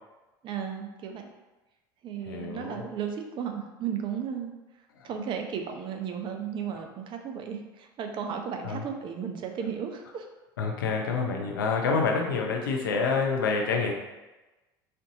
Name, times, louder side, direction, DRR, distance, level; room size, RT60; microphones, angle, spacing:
voice 1, 0.4-1.3 2.0-4.5 5.0-10.3, right 7 dB, 50° right, 4 dB, 0.6 m, -34 dB
voice 2, 2.3-2.9 5.0-5.1 8.6-8.8 10.6-13.9, left 4 dB, 90° left, 1 dB, 0.6 m, -27 dB
4.4 x 2.6 x 2.7 m, 1.1 s
hypercardioid pair, 85°, 11 cm